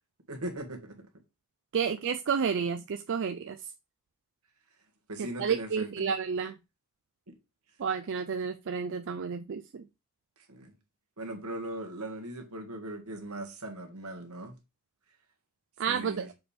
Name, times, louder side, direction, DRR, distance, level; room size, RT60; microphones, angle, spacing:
voice 1, 0.3-0.9 5.1-6.1 7.3-7.4 10.5-10.7 11.2-14.6 15.9-16.3, right 1 dB, 80° right, 1.7 m, -39 dB
voice 2, 1.7-3.6 5.2-6.5 7.8-9.8 15.8-16.3, right 6 dB, 55° right, 0.4 m, -31 dB
6.7 x 3.5 x 4.3 m
head